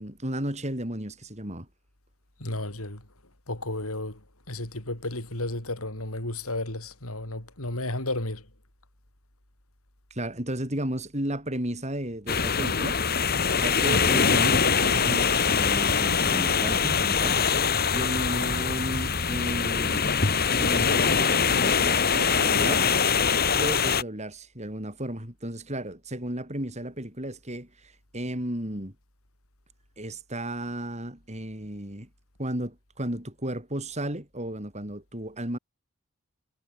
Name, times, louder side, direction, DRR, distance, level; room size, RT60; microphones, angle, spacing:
voice 1, 0.0-1.7 10.1-13.0 13.6-17.4 17.9-20.1 20.6-22.8 23.5-28.9 30.0-32.1 32.4-35.6, right 1 dB, 30° right, 6.0 m, -33 dB
voice 2, 2.4-3.1 3.5-8.5, left 2 dB, 80° left, 5.8 m, -33 dB
sound 1, 12.3-24.0, left 6 dB, 45° left, 1.9 m, -23 dB
head